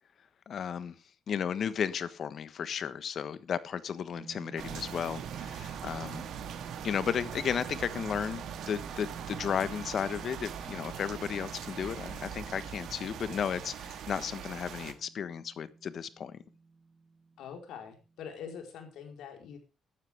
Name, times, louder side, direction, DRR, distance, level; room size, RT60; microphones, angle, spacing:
voice 1, 0.5-1.0 1.3-6.3 6.8-16.4, left 8 dB, 60° left, 15 dB, 1.3 m, -34 dB
sound 1, 4.1-18.6, right 4 dB, 30° right, 2.2 m, -51 dB
sound 2, 4.6-14.9, right 9 dB, 75° right, 2.3 m, -41 dB
voice 2, 17.4-19.6, left 7 dB, 80° left, 4 dB, 4.4 m, -44 dB
16.0 x 12.0 x 3.5 m, 0.30 s
cardioid pair, 90°, 0 cm